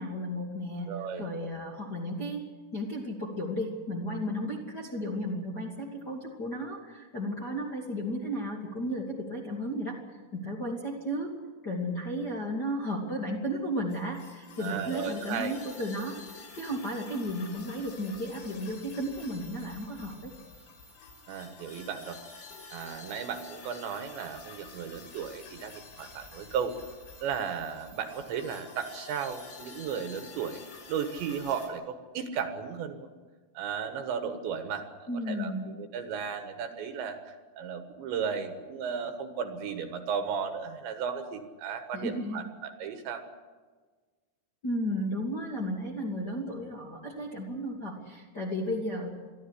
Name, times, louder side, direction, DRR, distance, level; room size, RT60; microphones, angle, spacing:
voice 1, 0.0-2.4 2.7-10.0 10.3-11.4 11.6-20.3 35.1-35.7 41.9-42.4 44.6-49.1, equal, 30° left, -1 dB, 2.1 m, -34 dB
voice 2, 0.9-1.5 14.6-15.5 21.3-22.2 22.7-26.7 27.2-33.1 33.5-35.5 35.8-43.2, right 7 dB, 70° right, 8 dB, 3.4 m, -35 dB
sound 1, 13.9-31.7, left 4 dB, 65° left, 6.1 m, -49 dB
23.5 x 14.5 x 9.9 m, 1.4 s
omnidirectional pair, 5.9 m